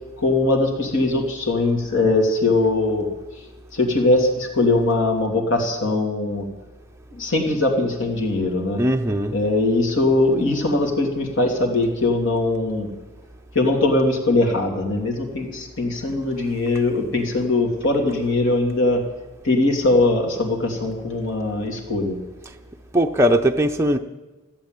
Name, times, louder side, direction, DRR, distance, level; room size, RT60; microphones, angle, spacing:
voice 1, 0.2-3.1 3.7-6.5 7.1-8.8 9.3-12.9 13.5-19.0 19.4-22.2, left 2 dB, 60° left, 3.0 m, -21 dB
voice 2, 8.8-9.4 22.9-24.0, equal, 10° right, 0.6 m, -19 dB
15.0 x 8.7 x 9.1 m
head